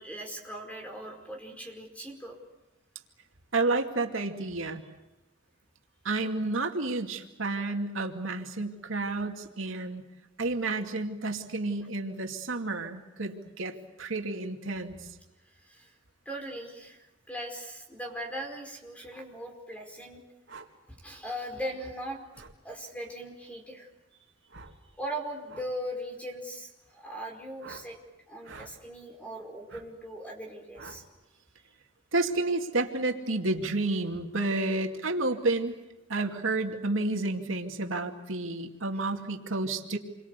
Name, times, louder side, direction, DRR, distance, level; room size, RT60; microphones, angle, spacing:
voice 1, 0.0-2.3 15.6-15.9 16.2-20.2 20.9-22.2 22.6-23.9 25.0-28.0 28.3-31.0, equal, 5° left, 2 dB, 4.9 m, -39 dB
voice 2, 3.5-4.8 6.0-10.0 10.4-15.0 32.1-35.7 36.1-40.0, right 2 dB, 90° right, 4 dB, 2.4 m, -30 dB
sound 1, 20.5-20.7 22.3-22.6 24.5-24.8 25.4-25.7 27.6-27.9 28.4-28.7 29.7-29.9 30.8-31.0, right 4 dB, 70° right, 3.3 m, -47 dB
28.5 x 23.5 x 8.3 m, 1.0 s
head